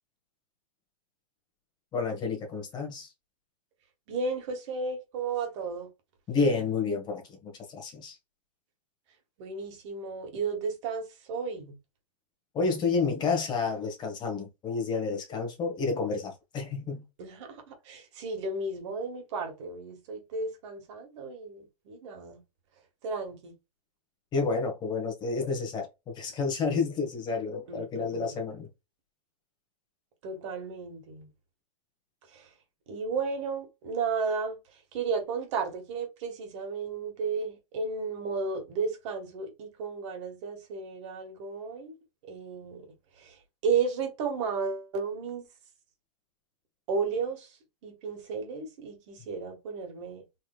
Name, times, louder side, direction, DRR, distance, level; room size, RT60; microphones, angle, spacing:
voice 1, 1.9-3.1 6.3-8.2 12.5-17.0 24.3-28.7, left 4 dB, 20° left, 1.2 m, -30 dB
voice 2, 4.1-5.9 9.4-11.8 17.2-22.4 23.0-23.5 27.7-28.4 30.2-31.3 32.3-32.5 32.9-41.9 42.3-45.5 46.9-47.6 47.8-50.2, right 5 dB, 50° right, 1.5 m, -33 dB
4.1 x 3.2 x 2.3 m
hypercardioid pair, 145°, 20 cm